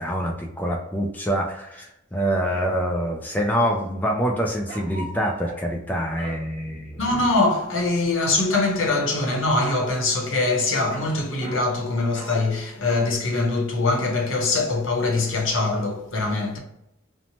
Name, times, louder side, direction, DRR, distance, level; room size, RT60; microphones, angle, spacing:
voice 1, 0.0-7.0, equal, 10° left, 0.3 m, -25 dB
sound 1, 4.7-5.7 6.1-6.4 8.5-9.9 10.9-11.7 12.1-12.4 12.8-13.1, right 1 dB, 25° right, 1.0 m, -40 dB
voice 2, 7.0-16.6, left 2 dB, 70° left, 0.8 m, -23 dB
2.8 x 2.1 x 2.8 m
head